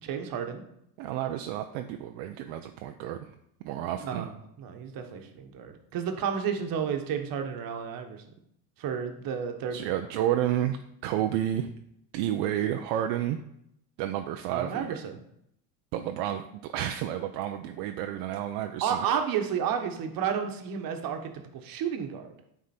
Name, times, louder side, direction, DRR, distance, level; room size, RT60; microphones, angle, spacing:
voice 1, 0.0-0.6 4.0-4.3 4.6-8.2 8.8-9.8 10.2-10.3 14.5-15.2 18.8-22.3, right 7 dB, 50° right, 5 dB, 1.2 m, -31 dB
voice 2, 1.0-3.3 3.6-4.3 9.7-10.8 11.0-11.7 12.1-13.4 14.0-15.0 15.9-19.1, right 11 dB, 70° right, 6 dB, 0.6 m, -30 dB
9.6 x 3.7 x 4.3 m, 0.75 s
supercardioid pair, 110°, 44 cm